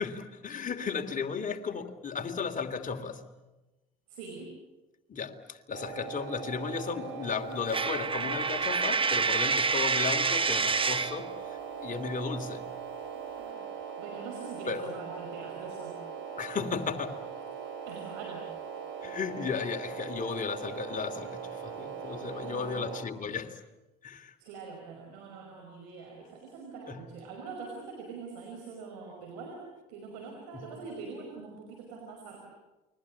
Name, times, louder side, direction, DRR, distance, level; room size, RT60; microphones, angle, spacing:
voice 1, 0.0-3.2 5.1-12.7 14.7-14.9 16.4-17.3 19.0-23.6 24.0-24.3 26.9-27.0 30.5-30.7, left 5 dB, 40° left, 6 dB, 3.0 m, -35 dB
voice 2, 4.1-4.5 13.4-13.6 14.0-15.9 17.9-18.5 22.4-22.9 24.4-32.4, right 4 dB, 80° right, 2 dB, 5.4 m, -44 dB
sound 1, 5.7-23.1, right 7 dB, 65° right, 3.9 m, -40 dB
Coin (dropping), 7.7-11.2, right 4 dB, 25° right, 1.4 m, -27 dB
29.0 x 22.5 x 8.6 m, 1.1 s
hypercardioid pair, 60°, 20 cm